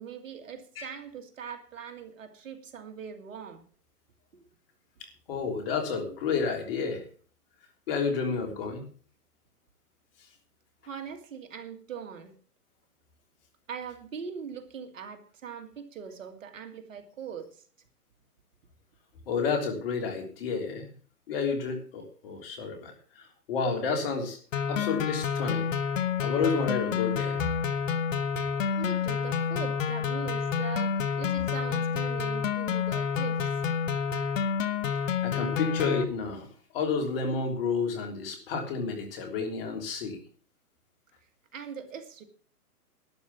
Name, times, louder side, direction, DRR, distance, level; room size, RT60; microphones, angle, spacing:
voice 1, 0.0-3.6 10.8-12.3 13.7-17.6 28.8-33.4 41.5-42.2, right 7 dB, 55° right, 2.3 m, -41 dB
voice 2, 5.3-7.1 7.9-8.8 19.3-20.9 21.3-24.4 24.7-25.7 26.2-27.4 35.2-36.5 36.7-40.2, left 5 dB, 35° left, 3.5 m, -30 dB
sound 1, 24.5-36.0, left 7 dB, 55° left, 1.3 m, -29 dB
12.0 x 8.5 x 7.2 m
hypercardioid pair, 150°, 46 cm